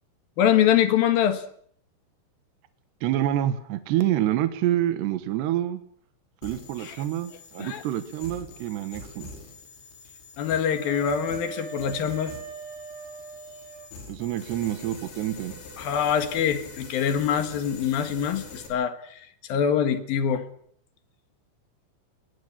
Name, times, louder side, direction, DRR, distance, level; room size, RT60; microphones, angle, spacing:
voice 1, 0.4-1.4 6.8-7.0 7.6-7.8 10.4-12.3 15.8-20.4, left 8 dB, 60° left, 9 dB, 2.9 m, -24 dB
voice 2, 3.0-5.8 6.4-9.3 14.1-15.6, right 12 dB, 70° right, 10 dB, 3.1 m, -27 dB
sound 1, 6.4-18.7, left 4 dB, 80° left, 7.6 m, -45 dB
Wind instrument woodwind instrument, 10.7-13.9, right 7 dB, 85° right, 7.0 m, -40 dB
21.0 x 20.5 x 7.3 m, 0.63 s
omnidirectional pair, 5.7 m